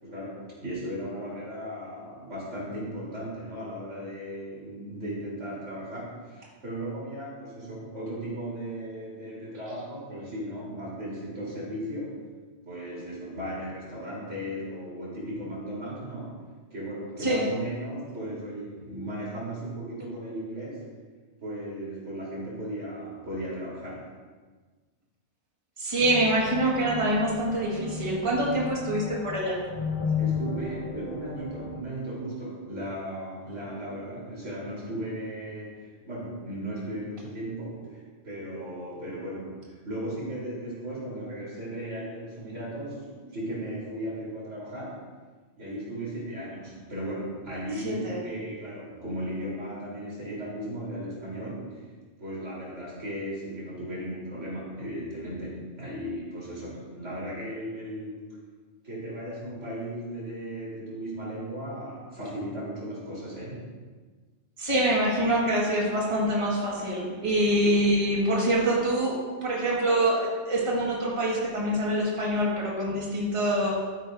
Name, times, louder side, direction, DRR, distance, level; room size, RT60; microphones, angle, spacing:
voice 1, 0.0-12.2 12.7-16.4 16.7-20.8 21.4-24.1 30.1-45.1 45.6-51.8 52.2-58.2 58.8-63.7, right 1 dB, 85° right, -6 dB, 3.8 m, -36 dB
voice 2, 25.8-29.6 47.8-48.2 64.6-73.7, right 1 dB, 25° right, -4 dB, 1.7 m, -25 dB
sound 1, 26.0-31.8, left 6 dB, 30° left, 0.7 m, -34 dB
13.0 x 9.1 x 2.6 m, 1.4 s
omnidirectional pair, 1.2 m